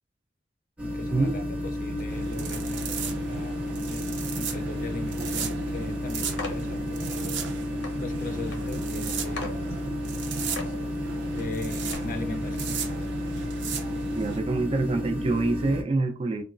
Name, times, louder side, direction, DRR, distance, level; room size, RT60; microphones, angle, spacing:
voice 1, 0.8-7.3 8.0-9.7 11.3-13.2, left 3 dB, 50° left, 0.5 m, -39 dB
sound 1, 0.8-15.8, left 1 dB, 5° right, 0.8 m, -32 dB
sound 2, 2.1-14.4, right 5 dB, 80° right, 0.5 m, -36 dB
sound 3, 6.4-6.6 7.4-7.5 7.8-8.0 8.4-8.6 9.0-9.1 9.4-9.6 10.1-10.2 10.5-10.8 11.3-11.5 11.9-12.0, left 4 dB, 80° left, 0.7 m, -36 dB
voice 2, 14.2-16.4, right 3 dB, 30° right, 0.3 m, -26 dB
2.9 x 2.2 x 2.5 m
head